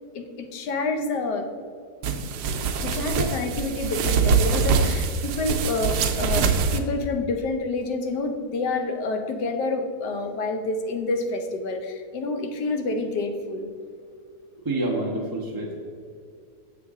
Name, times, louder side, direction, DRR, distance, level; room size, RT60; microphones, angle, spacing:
voice 1, 0.1-1.5 2.8-13.7, left 3 dB, 80° left, 5 dB, 1.4 m, -28 dB
sound 1, 2.0-6.8, right 5 dB, 75° right, 1.2 m, -24 dB
voice 2, 14.6-15.7, right 2 dB, 20° right, -3 dB, 0.6 m, -27 dB
7.1 x 6.7 x 3.6 m, 2.2 s
omnidirectional pair, 1.8 m